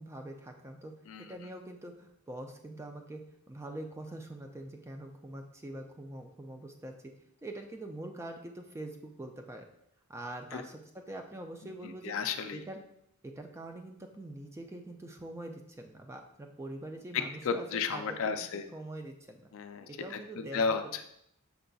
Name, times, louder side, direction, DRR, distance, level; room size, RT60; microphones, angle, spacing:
voice 1, 0.0-0.9 1.3-3.2 3.5-6.9 7.4-9.7 10.1-12.2 12.5-12.8 13.4-18.4 18.7-19.5 19.9-20.6, right 1 dB, 10° right, 4 dB, 0.3 m, -44 dB
voice 2, 1.1-1.5 10.5-10.6 11.8-12.6 17.1-18.6 19.5-21.0, left 5 dB, 60° left, 8 dB, 0.4 m, -34 dB
5.7 x 3.9 x 2.3 m, 0.76 s
head